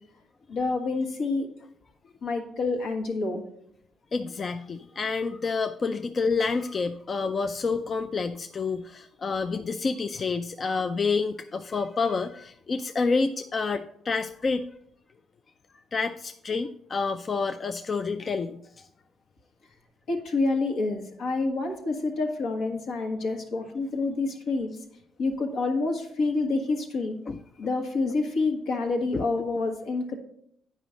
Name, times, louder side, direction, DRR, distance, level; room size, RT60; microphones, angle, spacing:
voice 1, 0.5-1.5 2.2-3.4 20.1-24.7 25.2-27.1 27.6-30.2, left 3 dB, 75° left, 3 dB, 1.6 m, -28 dB
voice 2, 4.1-14.6 15.9-18.9 27.3-27.4 29.1-29.2, left 4 dB, 40° left, 8 dB, 0.4 m, -28 dB
9.2 x 5.1 x 5.1 m, 0.71 s
cardioid pair, 90°, 0 cm